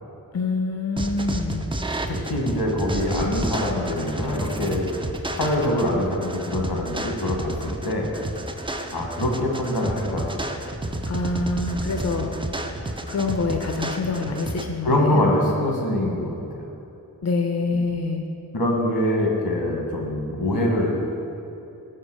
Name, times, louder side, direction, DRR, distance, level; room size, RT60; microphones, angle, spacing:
voice 1, 0.3-1.6 11.1-12.3 13.1-15.2 17.2-18.2, left 3 dB, 45° left, 4 dB, 0.6 m, -26 dB
sound 1, 1.0-14.7, right 1 dB, 15° right, 0.4 m, -30 dB
voice 2, 2.1-4.9 5.3-8.1 8.9-10.4 14.8-16.7 18.5-21.0, left 1 dB, 85° left, 0 dB, 1.3 m, -24 dB
6.6 x 4.6 x 6.1 m, 2.8 s
wide cardioid pair, 65°, 37 cm